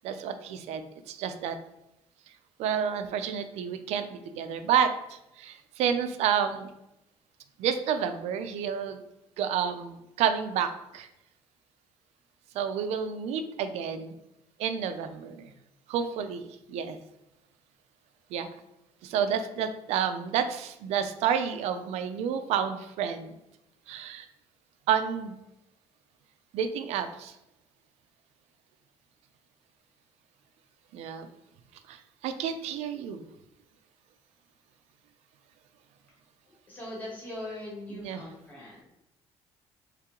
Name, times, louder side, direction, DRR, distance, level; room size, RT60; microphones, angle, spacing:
voice 1, 0.0-1.6 2.6-6.7 7.6-9.0 9.4-11.1 12.5-14.1 14.6-15.5 15.9-17.0 18.3-18.5 19.0-23.3 23.9-24.3 24.9-25.4 26.5-27.3 30.9-31.3 31.9-33.3 37.9-38.2, right 8 dB, 85° right, 8 dB, 0.4 m, -30 dB
voice 2, 36.4-38.8, left 1 dB, 15° left, -6 dB, 1.3 m, -41 dB
3.2 x 2.9 x 3.6 m, 0.86 s
cardioid pair, 160°, 11 cm